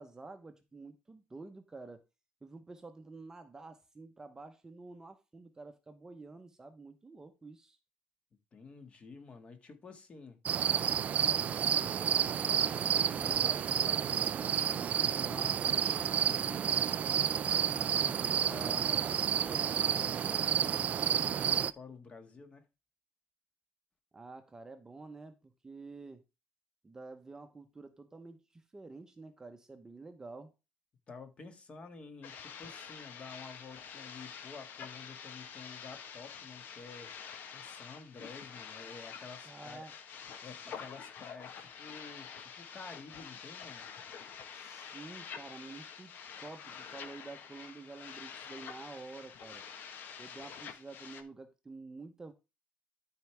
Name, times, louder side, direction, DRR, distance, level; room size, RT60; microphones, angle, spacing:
voice 1, 0.0-2.0 2.4-7.8 24.1-26.2 26.8-30.5 39.4-39.9 44.5-49.6 50.2-52.3, right 3 dB, 15° right, 0.9 m, -49 dB
voice 2, 8.5-10.4 11.8-16.9 17.7-22.6 31.1-37.1 37.5-39.9 40.4-43.8, left 4 dB, 30° left, 1.8 m, -50 dB
sound 1, 10.5-21.7, right 8 dB, 40° right, 0.4 m, -30 dB
sound 2, 32.2-51.2, left 7 dB, 60° left, 1.4 m, -47 dB
12.5 x 4.8 x 3.4 m
cardioid pair, 140°, 4 cm